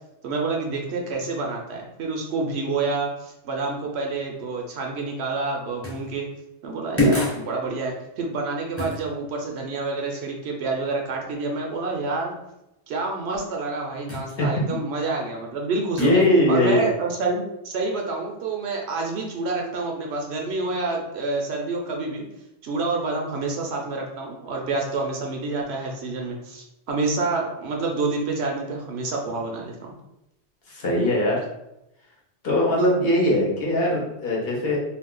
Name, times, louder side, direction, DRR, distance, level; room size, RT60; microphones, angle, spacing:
voice 1, 0.2-6.3 6.6-12.3 12.9-16.2 16.5-22.2 22.6-29.9, right 3 dB, 65° right, 0 dB, 0.8 m, -28 dB
sound 1, 5.8-6.1 7.0-7.5 8.8-9.0 14.1-14.3 16.0-16.3, left 1 dB, 15° left, 0.8 m, -24 dB
voice 2, 16.0-16.9 30.7-31.4 32.4-34.8, left 1 dB, 55° left, -3 dB, 1.0 m, -21 dB
2.5 x 2.3 x 3.6 m, 0.89 s
omnidirectional pair, 1.2 m